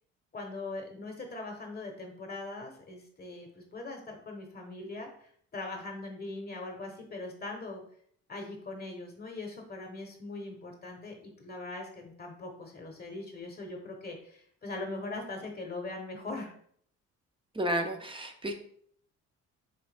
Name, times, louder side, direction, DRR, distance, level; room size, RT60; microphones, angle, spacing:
voice 1, 0.3-7.8 8.3-16.5, left 2 dB, 30° left, 2 dB, 0.9 m, -41 dB
voice 2, 17.5-18.5, right 1 dB, 15° right, 5 dB, 0.6 m, -31 dB
4.2 x 3.2 x 3.3 m, 0.62 s
cardioid pair, 90°, 30 cm